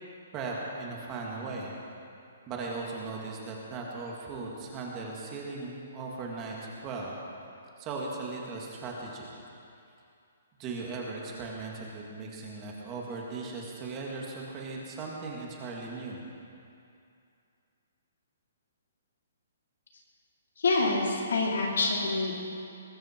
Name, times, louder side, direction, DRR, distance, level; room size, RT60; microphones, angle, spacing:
voice 1, 0.3-1.7 2.5-7.2 7.8-9.3 10.6-16.2, right 3 dB, 20° right, -2 dB, 2.1 m, -38 dB
voice 2, 20.6-22.3, left 3 dB, 80° left, -2 dB, 4.3 m, -26 dB
21.5 x 14.0 x 4.5 m, 2.6 s
hypercardioid pair, 170°, 0 cm